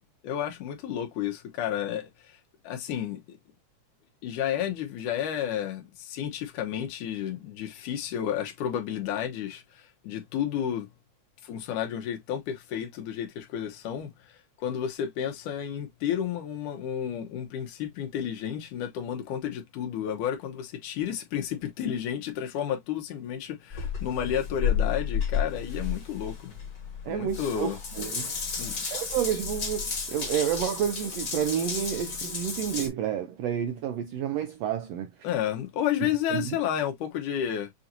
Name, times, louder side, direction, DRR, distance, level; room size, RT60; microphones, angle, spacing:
voice 1, 0.2-2.4 2.6-3.4 4.2-10.9 11.4-14.1 14.6-26.5 27.1-27.8 28.6-28.9 35.2-37.7, left 9 dB, 85° left, 2.6 m, -31 dB
Water tap faucet / Bathtub (filling or washing) / Drip, 23.7-32.9, left 6 dB, 40° left, 1.4 m, -32 dB
voice 2, 27.0-28.3 28.9-35.3 36.0-36.6, right 9 dB, 80° right, 1.4 m, -30 dB
6.9 x 2.6 x 2.8 m
omnidirectional pair, 3.5 m